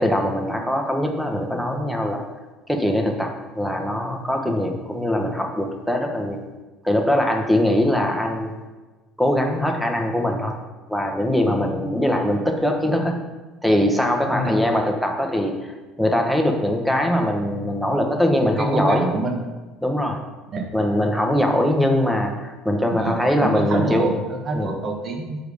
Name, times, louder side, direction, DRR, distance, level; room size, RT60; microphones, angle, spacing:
voice 1, 0.0-2.2 2.7-6.4 6.8-8.5 9.2-10.6 10.9-13.2 13.6-19.1 19.8-20.2 20.7-24.0 24.5-24.7, left 1 dB, ahead, 3 dB, 1.0 m, -22 dB
voice 2, 18.4-19.5 20.5-20.7 22.9-25.4, right 2 dB, 45° right, 3 dB, 1.2 m, -26 dB
5.2 x 4.7 x 4.9 m, 1.2 s
supercardioid pair, 85°, 0 cm